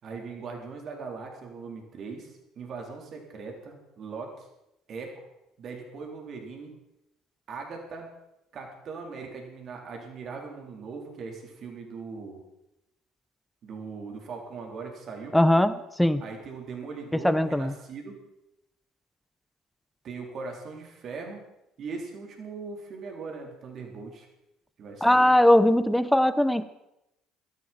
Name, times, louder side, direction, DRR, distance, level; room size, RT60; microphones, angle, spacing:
voice 1, 0.0-4.5 4.9-5.1 5.6-6.8 7.5-8.1 8.5-12.4 13.6-15.4 16.2-18.2 20.0-21.4 21.8-24.3 24.8-25.3, right 4 dB, 50° right, 1 dB, 3.8 m, -40 dB
voice 2, 15.3-15.7 16.0-16.2 17.2-17.7 25.0-26.6, left 1 dB, 5° left, 14 dB, 0.9 m, -20 dB
16.5 x 13.5 x 4.4 m, 0.87 s
hypercardioid pair, 60°, 0 cm